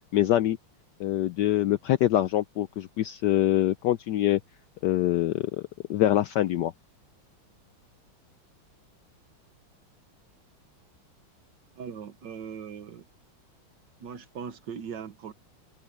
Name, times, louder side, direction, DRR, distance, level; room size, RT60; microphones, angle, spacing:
voice 1, 0.1-0.6 1.0-4.4 4.8-5.6 5.9-6.7, left 13 dB, 75° left, 1.0 m, -24 dB
voice 2, 11.8-13.1 14.0-15.3, right 7 dB, 60° right, 1.7 m, -39 dB
open air
omnidirectional pair, 2.3 m